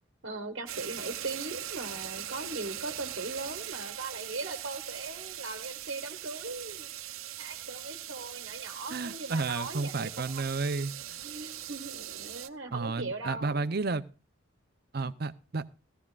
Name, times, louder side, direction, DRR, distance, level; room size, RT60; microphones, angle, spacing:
voice 1, 0.2-6.9 7.4-10.4 11.2-13.7, right 2 dB, 65° right, 4 dB, 1.2 m, -39 dB
sound 1, 0.7-12.5, right 12 dB, 85° right, 0.8 m, -41 dB
voice 2, 8.9-10.9 12.7-14.0 14.9-15.6, right 3 dB, 50° right, 13 dB, 0.6 m, -32 dB
16.0 x 14.5 x 2.4 m, 0.34 s
head